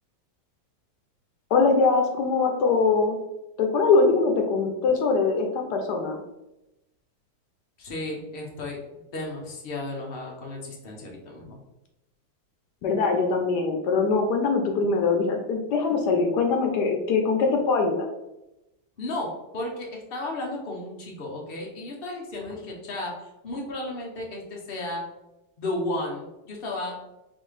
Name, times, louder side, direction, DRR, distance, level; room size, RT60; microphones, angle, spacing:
voice 1, 1.5-3.2 3.6-6.2 12.8-18.1, left 4 dB, 70° left, 3 dB, 1.0 m, -22 dB
voice 2, 7.8-8.8 9.1-11.6 19.0-25.0 25.6-27.0, left 2 dB, 85° left, -1 dB, 0.5 m, -34 dB
4.4 x 3.4 x 3.2 m, 0.93 s
omnidirectional pair, 2.2 m